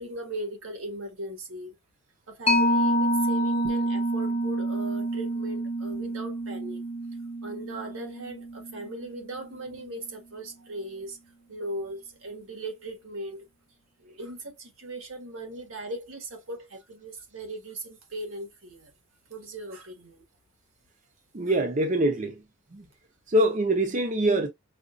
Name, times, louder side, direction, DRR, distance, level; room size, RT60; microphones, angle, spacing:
voice 1, 0.0-1.7 2.3-6.8 7.4-11.2 11.5-13.5 14.0-18.9 19.3-20.3, right 1 dB, 85° right, 1.5 m, -38 dB
Mallet percussion, 2.5-9.5, right 1 dB, 30° left, 0.7 m, -28 dB
voice 2, 21.3-22.4 22.7-22.9 23.3-24.5, right 1 dB, 35° right, 0.6 m, -24 dB
5.0 x 2.3 x 2.4 m
head